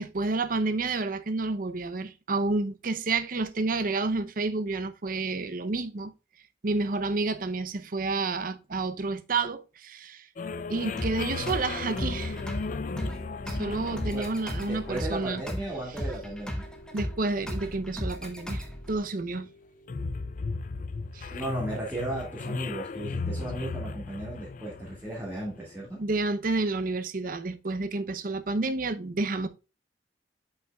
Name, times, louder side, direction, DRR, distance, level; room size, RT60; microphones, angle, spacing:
voice 1, 0.0-6.1 6.6-10.3 10.7-12.4 13.5-15.5 16.0-16.1 16.9-19.5 21.1-21.3 26.0-29.5, right 3 dB, 50° right, 0.7 m, -30 dB
sound 1, 10.4-25.8, left 3 dB, 45° left, 0.4 m, -37 dB
sound 2, 11.0-19.0, equal, 5° left, 1.2 m, -36 dB
voice 2, 14.6-16.7 21.3-26.0, right 1 dB, 10° right, 2.1 m, -36 dB
7.6 x 5.7 x 2.3 m
head